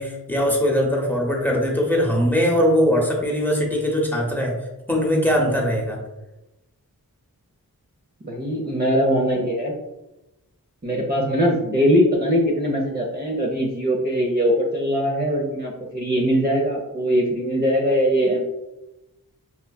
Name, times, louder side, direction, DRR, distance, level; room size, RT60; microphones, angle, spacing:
voice 1, 0.0-4.6 4.9-6.0, equal, 5° left, -2 dB, 1.0 m, -21 dB
voice 2, 8.2-9.7 10.8-18.4, equal, 25° right, -3 dB, 0.7 m, -21 dB
5.6 x 2.3 x 2.3 m, 0.96 s
wide cardioid pair, 60°, 38 cm